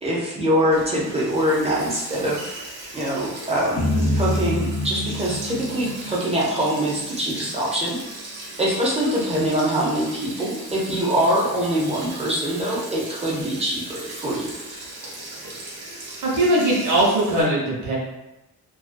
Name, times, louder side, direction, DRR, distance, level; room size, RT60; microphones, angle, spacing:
voice 1, 0.0-2.6 2.9-3.8 4.1-8.0 8.6-14.5, equal, 15° right, -5 dB, 0.4 m, -23 dB
Sink (filling or washing), 0.7-17.4, right 2 dB, 85° right, 0.8 m, -38 dB
sound 1, 3.8-7.0, left 1 dB, 40° left, 0.5 m, -26 dB
voice 2, 16.2-17.9, right 1 dB, 50° right, -5 dB, 0.9 m, -20 dB
2.4 x 2.1 x 2.4 m, 0.96 s
wide cardioid pair, 170°, 37 cm